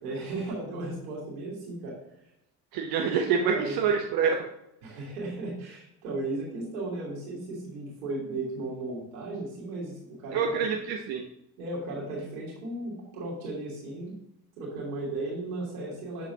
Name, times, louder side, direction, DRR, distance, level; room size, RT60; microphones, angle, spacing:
voice 1, 0.0-2.0 3.0-3.7 4.8-10.7 11.6-14.1 14.6-16.3, right 2 dB, 70° right, -5 dB, 3.0 m, -35 dB
voice 2, 2.7-4.5 10.3-11.2, right 6 dB, 55° right, 2 dB, 0.9 m, -26 dB
8.4 x 7.0 x 2.8 m, 0.81 s
figure-of-eight pair, 50°, 45 cm